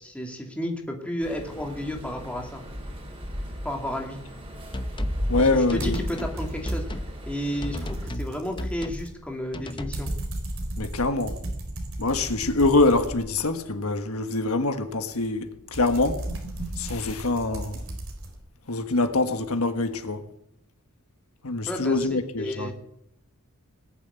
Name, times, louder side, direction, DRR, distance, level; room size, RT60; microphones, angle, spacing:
voice 1, 0.0-2.6 3.6-4.2 5.4-10.1 21.7-22.1 22.4-22.7, equal, 5° left, 2.5 m, -32 dB
sound 1, 1.2-8.1, equal, 25° right, 3.9 m, -35 dB
sound 2, 4.7-5.2 5.7-6.4 6.6-7.1 7.6-8.3 8.6-9.1 9.5-10.0, left 1 dB, 20° left, 0.9 m, -34 dB
voice 2, 5.3-6.0 10.8-11.4 12.0-16.2 16.8-17.8 18.7-20.2 21.4-22.7, left 2 dB, 80° left, 1.5 m, -24 dB
sound 3, 5.8-7.1 7.4-13.6 15.1-18.4, right 1 dB, 60° right, 4.3 m, -35 dB
20.0 x 7.4 x 9.5 m
head